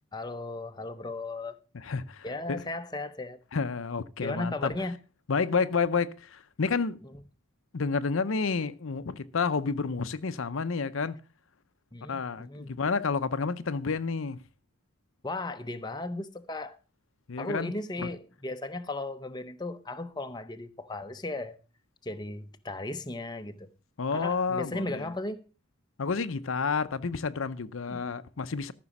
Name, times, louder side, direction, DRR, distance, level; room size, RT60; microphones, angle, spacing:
voice 1, 0.1-1.6 2.2-3.4 4.2-5.0 7.0-7.2 11.9-12.7 15.2-16.8 17.4-21.6 22.0-23.7 24.1-25.5 27.9-28.2, left 2 dB, 20° left, 0.7 m, -36 dB
voice 2, 1.8-2.6 3.5-4.7 5.3-7.0 7.7-11.2 12.1-14.4 17.3-17.7 18.0-18.1 24.0-25.1 26.0-28.7, left 5 dB, 75° left, 0.7 m, -30 dB
14.0 x 6.2 x 5.9 m
head